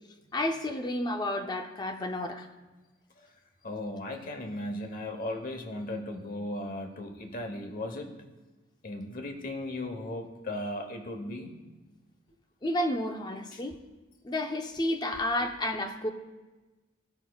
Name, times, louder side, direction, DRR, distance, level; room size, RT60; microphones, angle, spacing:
voice 1, 0.3-2.5 12.6-13.8 14.2-16.1, left 1 dB, 20° left, 4 dB, 0.5 m, -31 dB
voice 2, 3.6-8.1 8.8-11.5 13.5-13.6, left 1 dB, 45° left, 4 dB, 0.9 m, -36 dB
16.0 x 5.3 x 2.3 m, 1.2 s
head